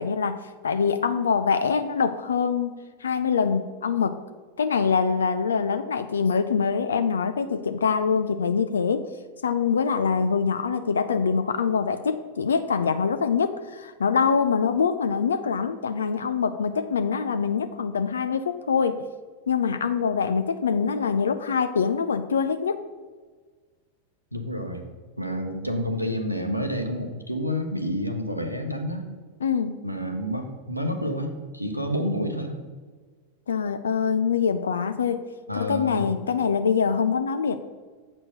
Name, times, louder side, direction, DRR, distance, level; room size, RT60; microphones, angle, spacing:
voice 1, 0.0-2.8 3.0-4.2 4.6-9.1 9.4-19.0 19.5-22.9 29.4-29.8 33.5-35.3 35.6-37.6, left 6 dB, 70° left, 10 dB, 0.4 m, -24 dB
voice 2, 24.3-24.9 25.2-29.1 29.8-32.6 35.5-36.1, equal, 90° right, 4 dB, 1.0 m, -29 dB
7.9 x 4.4 x 6.3 m, 1.5 s
figure-of-eight pair, 90°, 0 cm